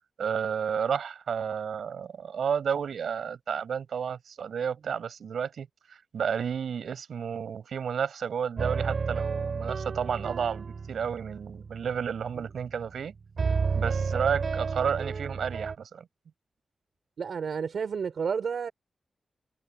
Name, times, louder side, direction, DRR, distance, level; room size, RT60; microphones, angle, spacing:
voice 1, 0.2-13.1 13.7-16.1, right 7 dB, 85° right, 6.8 m, -31 dB
sound 1, 8.6-13.1 13.4-15.8, right 5 dB, 50° right, 3.7 m, -32 dB
voice 2, 17.2-18.7, right 6 dB, 65° right, 3.6 m, -31 dB
wide cardioid pair, 175°, 0 cm